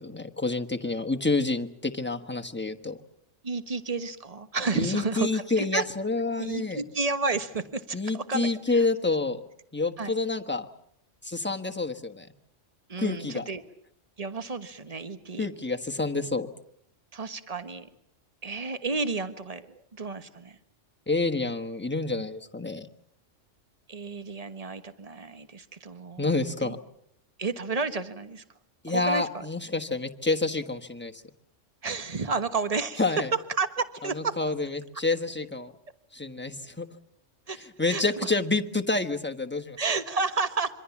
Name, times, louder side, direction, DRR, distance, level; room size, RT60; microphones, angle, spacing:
voice 1, 0.0-3.0 4.7-6.8 7.9-9.4 9.7-10.7 11.2-12.3 13.0-13.5 15.4-16.5 21.1-22.9 26.2-26.8 28.8-31.2 33.0-33.3 34.1-35.7 36.1-36.9 37.8-39.8, left 3 dB, 10° left, 5 dB, 1.3 m, -28 dB
voice 2, 3.4-5.8 6.4-8.8 10.0-10.1 12.9-13.6 14.2-15.5 17.1-17.9 18.4-20.6 23.9-26.3 26.6-26.7 27.4-28.4 28.9-29.5 31.8-33.2 33.6-34.3 37.5-38.0 39.8-40.7, right 4 dB, 30° right, 11 dB, 1.4 m, -31 dB
26.5 x 24.5 x 7.2 m, 0.71 s
omnidirectional pair, 1.3 m